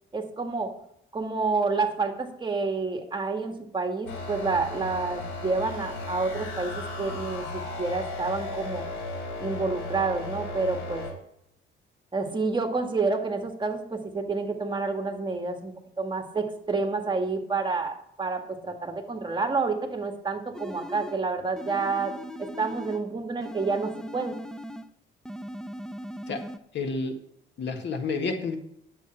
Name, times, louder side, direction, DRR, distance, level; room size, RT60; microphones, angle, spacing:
voice 1, 0.1-0.7 1.1-8.8 9.4-11.0 12.1-24.4, right 4 dB, 25° right, 4 dB, 1.9 m, -29 dB
sound 1, 4.1-11.1, left 2 dB, 80° left, 4.3 m, -35 dB
sound 2, 20.5-21.2 21.6-23.1 23.4-24.9 25.3-26.6, equal, 5° left, 0.6 m, -39 dB
voice 2, 26.7-27.1 27.6-28.6, left 4 dB, 65° left, 5 dB, 1.9 m, -29 dB
10.5 x 8.1 x 4.4 m, 0.72 s
cardioid pair, 90°, 20 cm